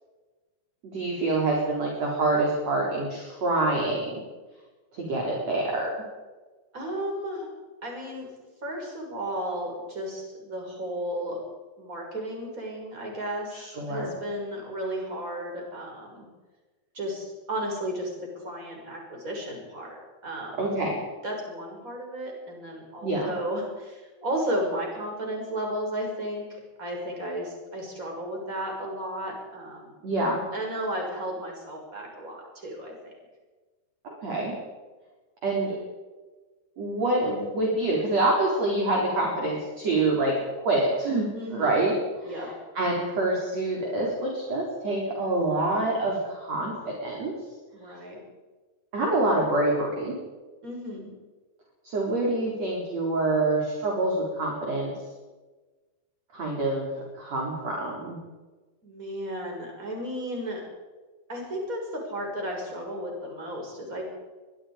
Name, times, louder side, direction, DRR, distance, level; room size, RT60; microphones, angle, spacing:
voice 1, 0.9-4.2 4.9-5.9 13.5-14.1 20.6-21.0 23.0-23.3 30.0-30.4 34.2-34.5 35.4-35.8 36.8-41.3 41.5-47.3 47.9-48.0 48.9-50.1 51.8-54.9 56.3-56.9 57.2-58.2, right 2 dB, 35° right, -2 dB, 4.7 m, -26 dB
voice 2, 6.7-7.5 7.8-8.3 8.6-11.4 11.8-16.3 16.9-20.6 21.2-30.0 30.5-33.1 41.3-41.9 42.2-42.5 47.7-48.2 50.6-51.1 58.8-60.6 61.3-64.0, equal, 15° right, 0 dB, 6.4 m, -34 dB
23.5 x 22.0 x 5.2 m, 1.3 s
omnidirectional pair, 5.6 m